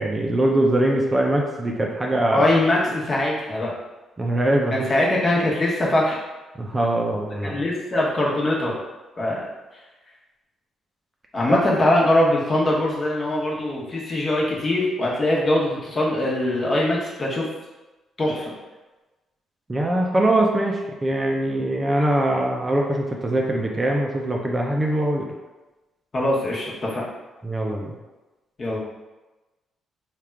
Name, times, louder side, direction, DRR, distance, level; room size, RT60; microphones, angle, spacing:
voice 1, 0.0-2.4 4.2-4.8 6.6-7.6 11.5-11.6 19.7-25.3 27.4-27.9, right 1 dB, 25° right, 0 dB, 0.5 m, -22 dB
voice 2, 2.3-3.7 4.7-6.2 7.4-8.8 9.2-9.5 11.3-17.5 18.2-18.5 26.1-27.1 28.6-28.8, left 1 dB, 35° left, -4 dB, 1.1 m, -22 dB
3.5 x 2.4 x 4.4 m, 1.1 s
cardioid pair, 90°, 0 cm